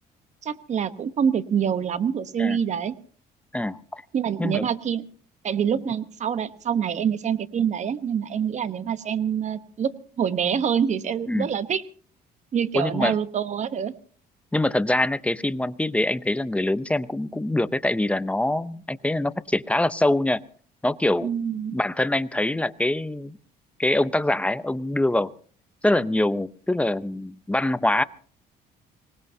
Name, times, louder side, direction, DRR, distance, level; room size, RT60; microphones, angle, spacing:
voice 1, 0.4-3.0 4.1-5.0 5.4-9.9 10.2-11.8 12.5-13.9 21.2-21.8, right 8 dB, 45° right, 13 dB, 1.0 m, -26 dB
voice 2, 3.5-4.0 4.4-4.7 11.3-11.5 12.7-13.1 14.5-20.4 20.8-21.3 21.7-23.4 23.8-25.3 25.8-28.0, left 1 dB, 5° left, 14 dB, 0.6 m, -24 dB
25.0 x 18.5 x 2.8 m, 0.43 s
cardioid pair, 110°, 17 cm